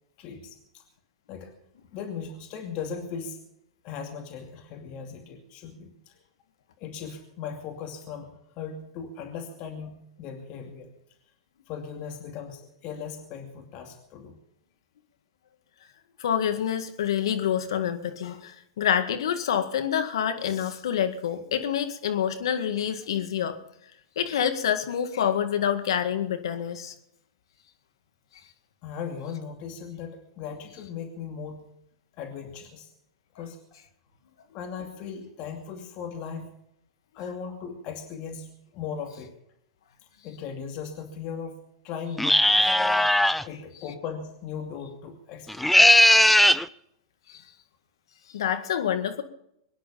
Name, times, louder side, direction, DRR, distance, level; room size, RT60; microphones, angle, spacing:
voice 1, 0.2-0.8 1.3-1.5 1.9-3.4 3.8-6.1 6.8-10.9 11.7-14.4 28.8-31.7 32.2-32.9 33.3-33.6 34.5-36.5 37.1-39.3 40.2-42.7 43.4-46.0, left 6 dB, 45° left, 3 dB, 2.5 m, -38 dB
voice 2, 16.2-23.6 24.2-26.9 47.3-47.4 48.3-49.2, left 9 dB, 75° left, 8 dB, 2.0 m, -27 dB
sound 1, 42.2-43.4 45.5-46.6, left 1 dB, 5° left, 0.5 m, -18 dB
23.5 x 10.0 x 5.8 m, 0.77 s
hypercardioid pair, 105°, 3 cm